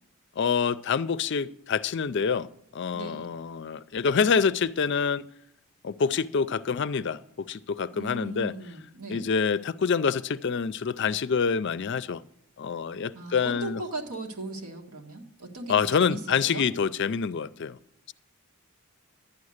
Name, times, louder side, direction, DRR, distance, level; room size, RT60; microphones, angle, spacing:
voice 1, 0.4-5.2 5.8-8.5 9.1-12.2 12.6-13.8 15.7-17.8, left 6 dB, 50° left, 0.4 m, -26 dB
voice 2, 2.9-3.3 7.9-9.2 13.1-16.6, right 2 dB, 75° right, 1.7 m, -38 dB
11.5 x 9.6 x 6.5 m
head